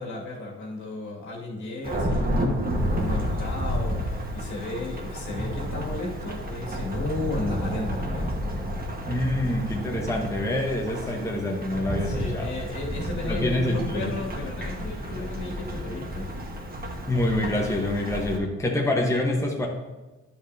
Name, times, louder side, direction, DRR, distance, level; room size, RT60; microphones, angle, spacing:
voice 1, 0.0-8.4 11.0-11.2 11.9-16.3, left 2 dB, 70° left, -2 dB, 2.2 m, -34 dB
Thunderstorm / Rain, 1.8-18.4, equal, 30° right, 1.4 m, -31 dB
voice 2, 9.1-12.5 13.3-14.1 17.1-19.7, left 1 dB, 10° left, 0 dB, 1.1 m, -26 dB
10.0 x 6.5 x 2.7 m, 1.2 s
cardioid pair, 90°, 30 cm